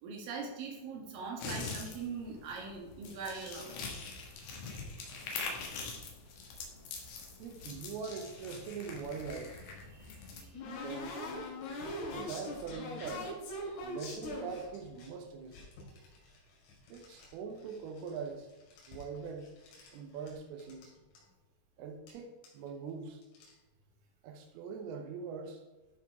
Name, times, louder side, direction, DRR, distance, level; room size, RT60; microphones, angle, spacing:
voice 1, 0.0-3.8 9.9-10.3, right 5 dB, 60° right, 0 dB, 2.6 m, -41 dB
sound 1, 1.4-10.4, left 4 dB, 65° left, 2.8 m, -43 dB
voice 2, 7.4-9.7 10.7-11.2 11.7-13.3 13.6-15.7 16.9-18.5 18.9-19.5 19.9-20.9 21.8-23.2 24.2-25.6, right 5 dB, 90° right, 3 dB, 2.2 m, -43 dB
sound 2, 9.8-15.1 15.5-17.3 17.6-18.3 18.6-20.0 20.3-20.4 20.6-20.9 21.2-21.3 22.1-22.2 22.4-22.7 23.2-23.5, left 1 dB, 80° left, 4.8 m, -42 dB
12.5 x 4.7 x 4.7 m, 1.0 s
omnidirectional pair, 5.8 m